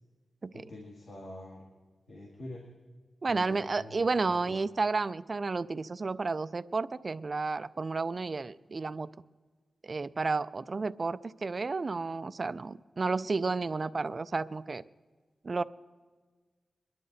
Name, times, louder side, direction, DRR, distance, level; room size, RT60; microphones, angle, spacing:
voice 1, 0.5-1.7 2.1-2.6 3.3-4.6, left 1 dB, 80° left, -2 dB, 2.1 m, -46 dB
voice 2, 3.2-9.1 9.8-14.8 15.4-15.6, right 3 dB, 40° right, 14 dB, 0.4 m, -31 dB
22.0 x 11.5 x 4.0 m, 1.4 s
wide cardioid pair, 120°, 0 cm